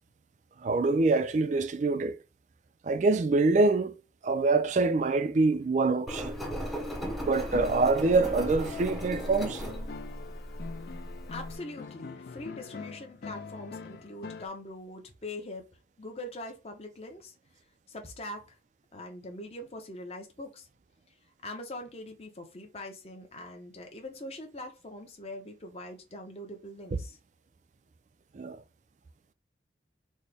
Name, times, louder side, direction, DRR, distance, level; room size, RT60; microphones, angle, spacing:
voice 1, 0.6-2.2 2.8-4.0 4.2-6.4 7.2-9.6 28.3-28.6, right 3 dB, 40° right, 0.3 m, -25 dB
Engine, 6.1-11.5, equal, ahead, 0.6 m, -36 dB
sound 1, 7.2-14.5, left 5 dB, 55° left, 0.4 m, -44 dB
voice 2, 11.3-15.7 16.0-17.3 17.9-18.6 18.9-20.7 21.4-27.2, left 1 dB, 35° left, 0.7 m, -42 dB
4.2 x 2.1 x 3.3 m
head